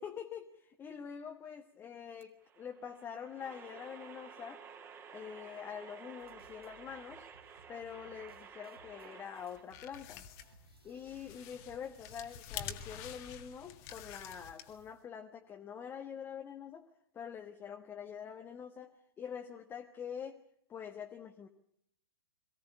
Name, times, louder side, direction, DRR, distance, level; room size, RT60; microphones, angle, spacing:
voice 1, 0.0-4.6 5.1-7.3 7.7-10.3 10.8-16.8 17.1-20.4 20.7-21.5, left 7 dB, 15° left, 4 dB, 1.2 m, -45 dB
sound 1, 2.2-9.6, right 6 dB, 20° right, 2.2 m, -53 dB
sound 2, 6.2-12.6, right 3 dB, 80° right, 2.6 m, -64 dB
sound 3, 9.4-15.0, left 9 dB, 35° left, 1.8 m, -48 dB
22.5 x 16.5 x 9.9 m, 0.74 s
figure-of-eight pair, 110°, 13 cm